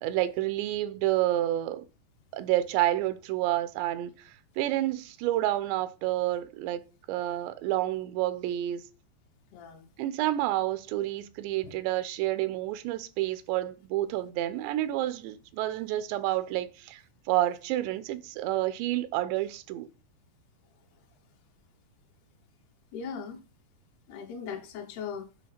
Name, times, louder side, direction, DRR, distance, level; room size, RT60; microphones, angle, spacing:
voice 1, 0.0-1.9 2.3-6.8 7.1-8.8 10.0-17.0 17.3-19.9, right 14 dB, 85° right, 2.9 m, -29 dB
voice 2, 9.5-9.9 11.6-11.7 22.9-23.4 24.1-25.3, left 6 dB, 70° left, 2.9 m, -39 dB
9.3 x 4.6 x 5.8 m
omnidirectional pair, 5.1 m